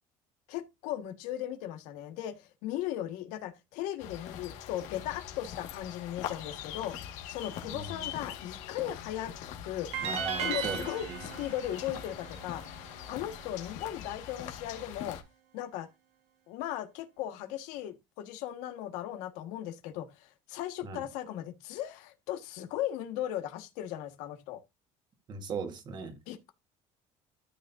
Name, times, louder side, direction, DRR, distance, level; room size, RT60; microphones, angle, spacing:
voice 1, 0.5-7.0 7.3-9.3 9.6-9.9 10.4-11.1 11.4-12.6 13.1-15.2 15.5-15.9 16.5-24.6 26.3-26.5, left 12 dB, 90° left, 1.7 m, -37 dB
sound 1, 4.0-15.2, left 10 dB, 75° left, 1.9 m, -42 dB
voice 2, 7.7-8.1 10.0-11.2 20.8-21.1 25.3-26.2, right 5 dB, 35° right, 1.6 m, -38 dB
sound 2, 9.9-13.1, right 7 dB, 60° right, 1.8 m, -37 dB
13.0 x 6.3 x 2.7 m
cardioid pair, 150°, 12 cm